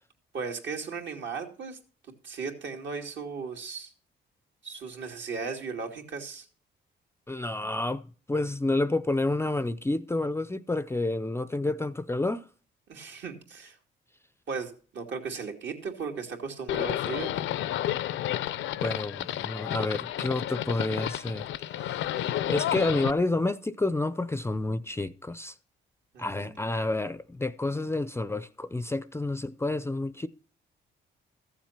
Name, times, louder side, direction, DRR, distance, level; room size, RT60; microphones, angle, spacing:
voice 1, 0.3-1.8 2.2-3.9 4.6-6.5 12.9-13.7 14.5-17.4 26.1-26.5, right 5 dB, 65° right, 2.7 m, -36 dB
voice 2, 7.3-12.5 18.8-21.5 21.8-25.6 26.2-30.3, left 2 dB, 15° left, 0.5 m, -29 dB
Livestock farm animals working animals, 16.7-23.1, left 12 dB, 80° left, 0.6 m, -31 dB
14.5 x 7.3 x 5.9 m
cardioid pair, 90°, 20 cm